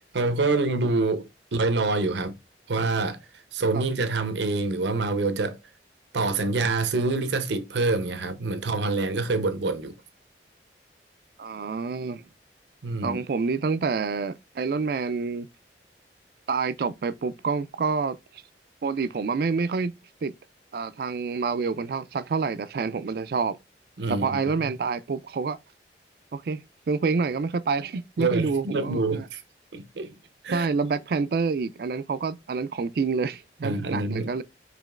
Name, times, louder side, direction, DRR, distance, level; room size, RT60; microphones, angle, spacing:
voice 1, 0.1-2.4 2.7-3.2 3.5-5.6 6.1-9.9 12.8-13.2 24.0-24.7 28.2-29.4 29.7-30.1 30.4-30.7 33.6-34.3, right 3 dB, 85° right, 0.7 m, -26 dB
voice 2, 11.4-12.2 13.0-15.5 16.5-18.2 18.8-19.9 20.2-20.3 20.7-23.6 24.1-25.6 26.3-26.6 26.9-29.3 30.5-34.4, right 4 dB, 55° right, 0.3 m, -27 dB
5.0 x 2.9 x 2.4 m
head